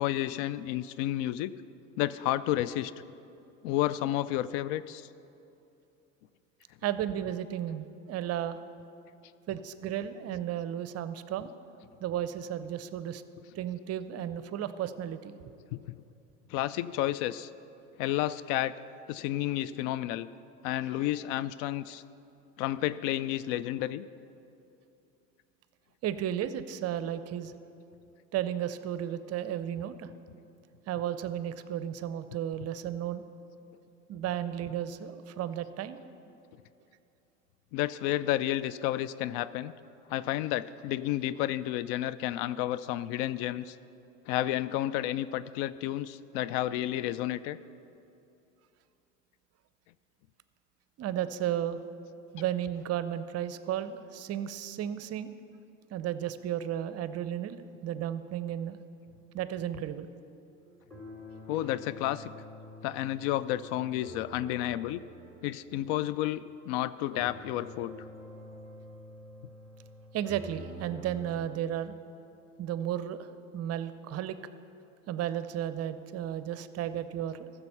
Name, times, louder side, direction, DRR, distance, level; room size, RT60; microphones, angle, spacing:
voice 1, 0.0-1.5 2.0-2.9 3.6-5.1 15.7-16.0 16.5-17.5 18.0-18.7 19.1-20.3 20.6-22.0 22.6-24.1 37.7-39.7 40.1-43.8 44.3-47.6 61.5-62.3 62.8-65.0 65.4-67.9, left 14 dB, 60° left, 16 dB, 0.5 m, -31 dB
voice 2, 6.8-8.6 9.5-11.5 12.0-13.2 13.5-15.3 26.0-27.5 28.3-30.1 30.9-33.2 34.1-36.0 51.0-51.8 52.3-55.3 55.9-58.8 59.3-60.1 70.1-71.9 72.6-74.4 75.1-77.5, right 10 dB, 40° right, 13 dB, 0.6 m, -34 dB
sound 1, 60.6-66.8 67.1-71.5, left 1 dB, 10° left, 2.6 m, -48 dB
14.5 x 6.9 x 5.6 m, 2.7 s
hypercardioid pair, 70°, 38 cm